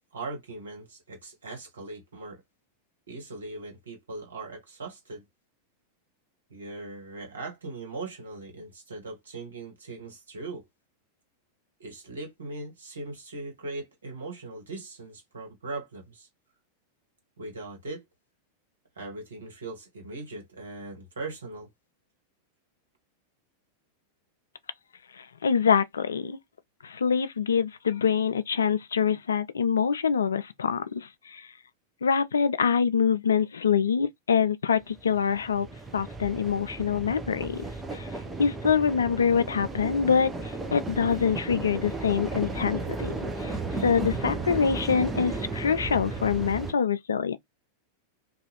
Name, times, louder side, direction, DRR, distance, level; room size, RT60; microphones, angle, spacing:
voice 1, 0.1-2.4 3.1-5.2 6.5-10.6 11.8-16.3 17.4-18.0 19.0-21.7, right 2 dB, 70° right, 1.2 m, -39 dB
voice 2, 25.1-26.4 26.8-31.5 32.0-35.7 35.9-37.6 37.9-38.1 38.4-43.1 43.4-47.4, left 6 dB, 70° left, 0.3 m, -25 dB
sound 1, 34.8-46.7, right 3 dB, 10° right, 0.6 m, -34 dB
2.6 x 2.3 x 2.9 m
figure-of-eight pair, 90°, 0 cm